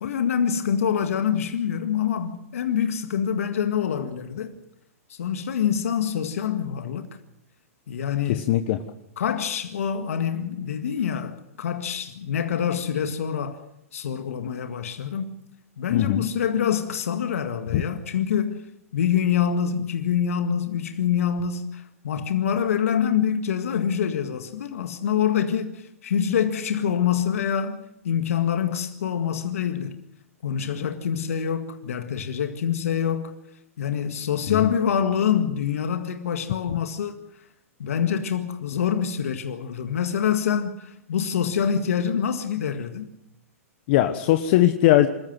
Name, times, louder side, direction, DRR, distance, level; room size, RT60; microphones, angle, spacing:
voice 1, 0.0-4.5 5.1-7.2 7.9-8.5 9.2-13.6 13.9-15.3 15.8-18.6 18.9-29.9 30.4-33.3 33.8-37.2 37.8-43.1, left 8 dB, 70° left, 1.9 m, -25 dB
voice 2, 8.3-8.8 15.9-16.2 17.7-17.8 34.5-34.7 43.9-45.1, left 14 dB, 50° left, 1.3 m, -20 dB
26.5 x 14.0 x 7.7 m
hypercardioid pair, 120°, 8 cm